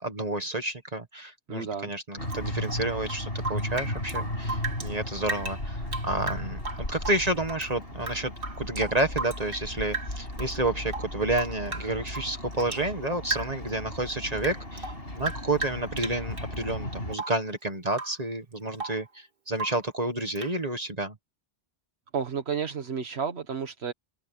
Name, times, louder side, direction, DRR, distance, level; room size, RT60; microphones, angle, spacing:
voice 1, 0.0-21.2, right 2 dB, 40° right, 1.8 m, -30 dB
voice 2, 1.5-1.9 22.1-23.9, right 6 dB, 80° right, 1.6 m, -31 dB
sound 1, 2.2-17.2, left 1 dB, 65° left, 6.9 m, -36 dB
Rain / Drip, 2.3-4.9 5.2-7.7 8.0-9.7 9.9-10.6 10.9-12.9 13.2-13.7 14.0-16.5 17.1-17.5 17.9-18.2 18.5-19.1 19.5-19.9 20.4-20.6, right 3 dB, 60° right, 2.3 m, -36 dB
open air
omnidirectional pair, 1.1 m